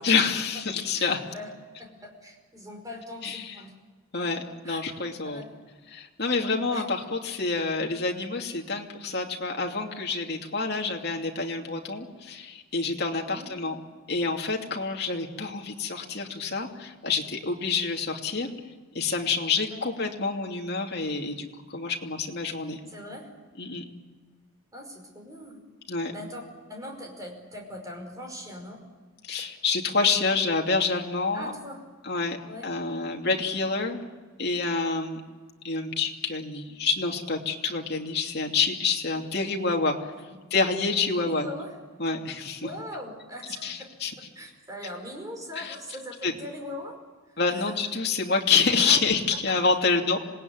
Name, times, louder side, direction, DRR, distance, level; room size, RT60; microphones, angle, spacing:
voice 1, 0.0-1.2 3.2-3.6 4.1-5.4 5.9-13.8 14.1-18.5 18.9-22.8 23.6-23.8 25.9-26.1 29.2-31.5 32.0-32.4 32.6-34.0 34.4-35.2 35.6-40.0 40.5-41.5 42.0-42.7 43.6-44.1 45.6-45.7 46.2-46.3 47.4-50.2, left 4 dB, 50° left, 1 dB, 2.8 m, -27 dB
voice 2, 0.9-1.5 1.8-3.7 4.6-4.8 5.2-5.5 6.7-6.8 13.3-13.5 19.7-19.8 22.9-23.3 24.7-25.6 26.1-26.4 26.7-28.8 31.3-31.8 32.5-32.7 41.2-41.8 42.6-43.7 44.4-47.0 47.5-47.7 48.8-49.0, left 1 dB, 15° right, 2 dB, 5.3 m, -40 dB
26.5 x 19.5 x 9.5 m, 1.4 s
head